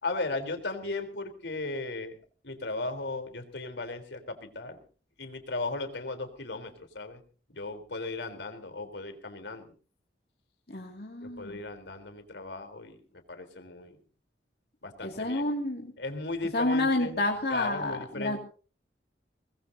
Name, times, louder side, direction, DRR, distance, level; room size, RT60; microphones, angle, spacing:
voice 1, 0.0-2.2 2.4-4.8 5.2-7.2 7.5-9.7 11.2-13.0 13.3-14.0 14.8-15.4 16.0-17.2 17.5-18.4, left 3 dB, 85° left, 6 dB, 3.8 m, -36 dB
voice 2, 10.7-11.6 15.0-15.9 16.5-18.4, left 2 dB, 60° left, 0 dB, 2.4 m, -29 dB
22.5 x 20.5 x 2.8 m, 0.40 s
head